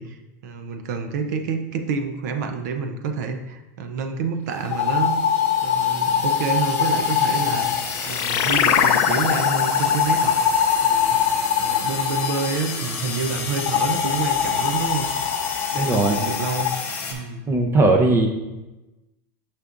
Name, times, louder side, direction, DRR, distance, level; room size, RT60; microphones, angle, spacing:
voice 1, 0.0-5.2 5.6-7.7 8.1-10.4 10.8-11.2 11.6-15.1 15.7-16.7 17.1-17.4, right 5 dB, 70° right, 7 dB, 0.7 m, -28 dB
sound 1, 4.6-8.5 9.2-12.5 13.6-16.8, left 8 dB, 65° left, 0.8 m, -23 dB
sound 2, 4.7-17.1, left 4 dB, 25° left, 1.4 m, -31 dB
sound 3, 7.4-12.3, left 10 dB, 40° left, 0.4 m, -24 dB
voice 2, 15.7-16.2 17.5-18.3, right 2 dB, 25° right, 4 dB, 0.7 m, -18 dB
6.4 x 6.1 x 2.5 m, 1.0 s
supercardioid pair, 125°, 9 cm